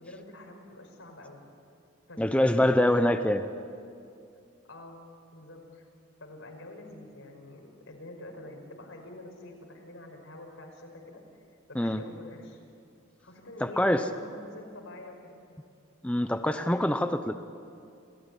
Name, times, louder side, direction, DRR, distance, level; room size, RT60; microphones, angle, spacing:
voice 1, 0.0-1.4 2.1-2.7 4.7-5.0 5.3-5.9 6.2-11.2 11.7-12.6 13.2-15.4, left 1 dB, 80° left, 2 dB, 5.3 m, -46 dB
voice 2, 2.2-3.4 11.8-12.0 13.6-14.0 16.0-17.3, left 1 dB, 5° left, 8 dB, 0.7 m, -24 dB
29.5 x 17.5 x 9.9 m, 2.5 s
head